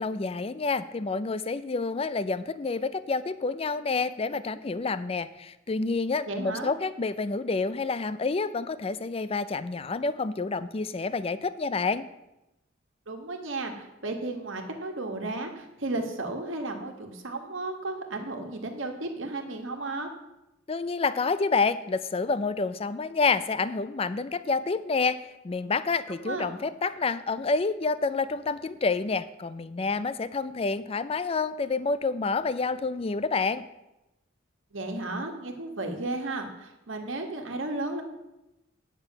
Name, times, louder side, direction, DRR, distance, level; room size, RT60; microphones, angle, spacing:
voice 1, 0.0-12.1 20.7-33.6, left 4 dB, 30° left, 14 dB, 0.4 m, -28 dB
voice 2, 6.2-6.7 13.1-20.1 26.2-26.5 34.7-38.0, right 2 dB, 75° right, 3 dB, 1.6 m, -34 dB
9.4 x 6.7 x 6.0 m, 0.92 s
head